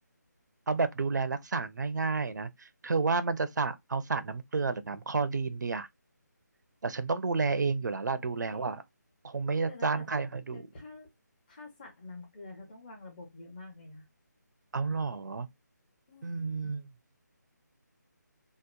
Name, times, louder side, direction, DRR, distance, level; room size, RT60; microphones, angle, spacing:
voice 1, 0.7-5.9 6.8-8.8 9.2-10.6 14.7-15.5 16.2-16.9, right 4 dB, 75° right, 0.5 m, -31 dB
voice 2, 8.2-8.8 9.7-10.1 10.5-11.1 11.5-14.0 16.1-16.5, left 3 dB, 25° left, 0.9 m, -48 dB
2.8 x 2.0 x 2.3 m
figure-of-eight pair, 165°, 10 cm